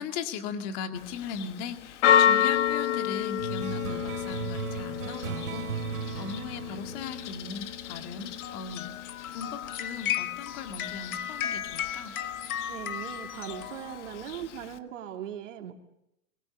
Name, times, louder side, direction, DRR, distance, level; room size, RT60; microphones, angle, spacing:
voice 1, 0.0-12.2, left 6 dB, 30° left, 6 dB, 2.0 m, -38 dB
Church bell, 1.0-14.8, left 9 dB, 50° left, 1.5 m, -31 dB
sound 1, 3.4-8.3, right 9 dB, 80° right, 3.5 m, -37 dB
sound 2, 8.4-14.3, left 10 dB, 65° left, 1.8 m, -35 dB
voice 2, 12.7-15.7, right 10 dB, 55° right, 4 dB, 2.6 m, -39 dB
23.0 x 22.5 x 6.8 m, 0.80 s
hypercardioid pair, 165°, 45 cm